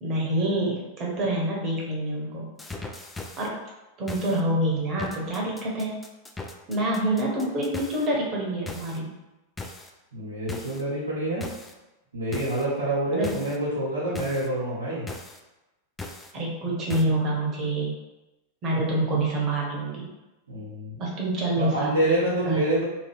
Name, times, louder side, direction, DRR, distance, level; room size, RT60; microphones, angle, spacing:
voice 1, 0.0-2.5 3.4-3.6 4.0-6.0 6.7-9.1 13.1-13.3 16.3-18.0 18.6-20.1 21.0-22.1 22.4-22.6, right 1 dB, 30° right, -3 dB, 1.0 m, -27 dB
sound 1, 2.6-3.5 4.1-4.4 5.0-8.1 8.7-9.0 9.6-9.9 10.5-10.8 11.4-11.7 12.3-12.7 13.2-13.6 14.2-14.5 15.1-15.4 16.0-16.3 16.9-17.0, left 3 dB, 10° left, 0.3 m, -38 dB
voice 2, 10.1-11.5 12.1-15.1 20.5-21.0 21.5-22.8, right 1 dB, 75° right, -8 dB, 1.1 m, -27 dB
2.9 x 2.3 x 3.4 m, 1.0 s
figure-of-eight pair, 90°, 0 cm